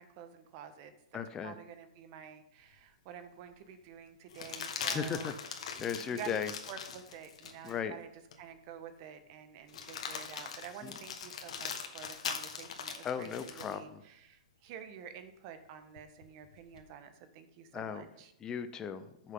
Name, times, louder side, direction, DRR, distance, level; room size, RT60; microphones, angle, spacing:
voice 1, 0.0-5.3 6.0-6.4 6.7-8.1 8.4-18.3, right 8 dB, 40° right, 10 dB, 1.3 m, -49 dB
voice 2, 1.1-1.5 4.9-5.3 5.8-6.5 7.6-7.9 10.8-10.9 13.0-14.0 17.7-18.1 18.4-19.3, left 7 dB, 20° left, 10 dB, 0.7 m, -37 dB
sound 1, 2.7-2.8 4.3-7.8 8.3-8.4 9.7-13.8 16.0-16.8, left 6 dB, 65° left, 1.6 m, -41 dB
13.5 x 6.6 x 3.8 m, 0.83 s
hypercardioid pair, 145°, 4 cm